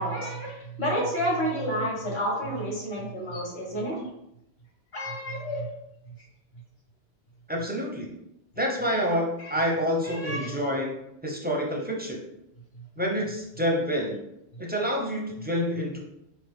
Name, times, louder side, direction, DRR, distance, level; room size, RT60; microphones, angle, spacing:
voice 1, 0.0-4.0 4.9-5.7 9.4-9.5 10.0-10.5, equal, 65° left, -2 dB, 1.4 m, -30 dB
voice 2, 7.5-8.1 8.6-10.9 11.2-12.2 13.0-14.2 14.6-16.0, equal, 15° right, -2 dB, 0.4 m, -28 dB
4.0 x 2.9 x 3.5 m, 0.83 s
omnidirectional pair, 1.1 m